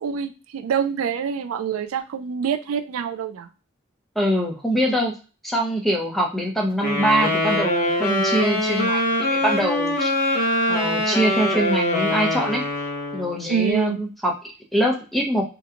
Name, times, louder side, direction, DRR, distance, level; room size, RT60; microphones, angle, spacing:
voice 1, 0.0-3.5 13.5-14.0, right 7 dB, 85° right, 9 dB, 0.4 m, -26 dB
voice 2, 4.2-5.2 5.4-10.1 10.7-12.6 13.1-15.4, equal, ahead, -1 dB, 0.7 m, -23 dB
sound 1, 6.8-13.4, left 1 dB, 45° left, 0.8 m, -23 dB
2.9 x 2.2 x 3.6 m, 0.34 s
head